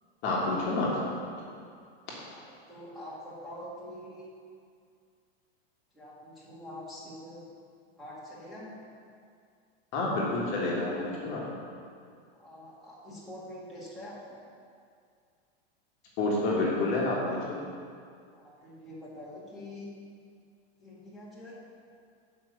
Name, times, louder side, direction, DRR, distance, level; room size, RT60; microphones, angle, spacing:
voice 1, 0.2-0.9 2.1-2.2 9.9-11.4 16.2-17.4, left 2 dB, 40° left, -4 dB, 1.6 m, -28 dB
voice 2, 2.3-4.3 5.9-7.4 8.0-8.8 12.4-14.4 18.3-19.9 20.8-21.6, left 1 dB, ahead, -10 dB, 1.7 m, -45 dB
7.3 x 4.9 x 6.7 m, 2.2 s
supercardioid pair, 155°, 32 cm